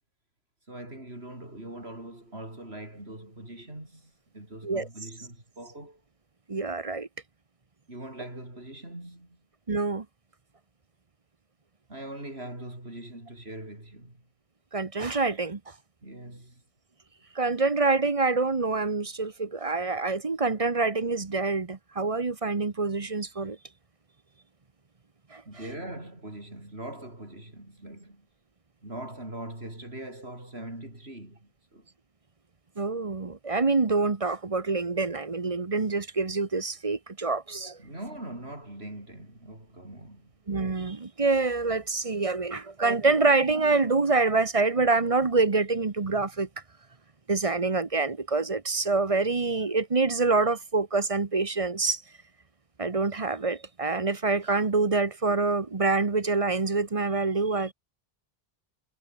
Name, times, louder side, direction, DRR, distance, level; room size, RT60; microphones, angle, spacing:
voice 1, 0.7-6.0 7.9-9.4 11.9-14.2 16.0-16.6 25.4-28.3 28.8-31.9 37.8-40.3, right 1 dB, 85° right, 8.0 m, -42 dB
voice 2, 6.5-7.1 9.7-10.0 14.7-15.6 17.3-23.6 25.3-25.4 32.8-37.8 40.5-46.5 47.3-52.0 52.8-57.7, right 3 dB, 35° right, 1.1 m, -26 dB
omnidirectional pair, 1.0 m